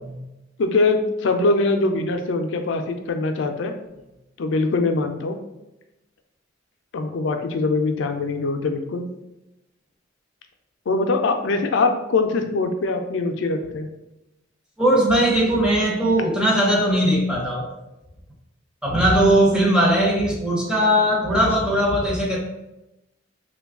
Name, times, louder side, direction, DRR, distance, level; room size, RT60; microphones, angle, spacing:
voice 1, 0.6-3.7 4.4-5.4 6.9-9.1 10.9-13.9, left 3 dB, 70° left, 6 dB, 0.4 m, -22 dB
voice 2, 14.8-17.7 18.8-22.4, right 1 dB, 5° right, -3 dB, 0.7 m, -19 dB
3.1 x 2.3 x 3.5 m, 0.94 s
head